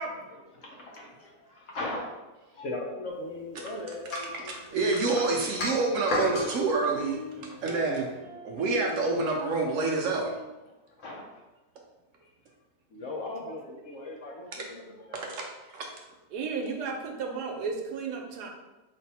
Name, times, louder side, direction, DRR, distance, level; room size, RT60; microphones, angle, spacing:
voice 1, 0.0-0.4 16.3-18.5, right 4 dB, 90° right, 2 dB, 1.2 m, -34 dB
voice 2, 0.6-2.2 2.5-4.8 7.5-7.6 8.6-8.7 11.0-11.3 12.2-12.3 12.9-15.4, left 2 dB, 65° left, -1 dB, 0.9 m, -39 dB
sound 1, 4.1-6.5, left 1 dB, 80° left, 1.5 m, -32 dB
voice 3, 4.7-7.2 7.6-8.1 8.4-10.3 15.7-15.8, right 3 dB, 70° right, 0 dB, 0.8 m, -27 dB
sound 2, 6.9-10.4, left 3 dB, 40° right, 0.8 m, -41 dB
3.3 x 2.6 x 4.1 m, 1.1 s
omnidirectional pair, 1.7 m